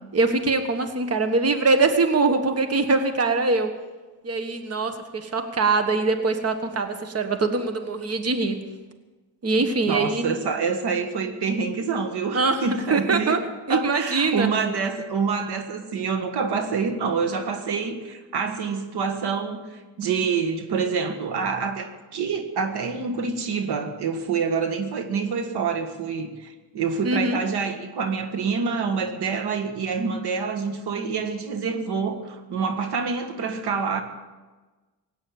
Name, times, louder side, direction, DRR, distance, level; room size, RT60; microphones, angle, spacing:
voice 1, 0.1-3.7 4.2-8.5 9.4-10.3 12.3-13.4 13.7-14.5 27.0-27.4, right 3 dB, 40° right, 8 dB, 1.5 m, -23 dB
voice 2, 9.6-13.4 13.7-34.0, right 5 dB, 80° right, 7 dB, 1.8 m, -27 dB
17.0 x 9.1 x 8.7 m, 1.2 s
cardioid pair, 90°, 39 cm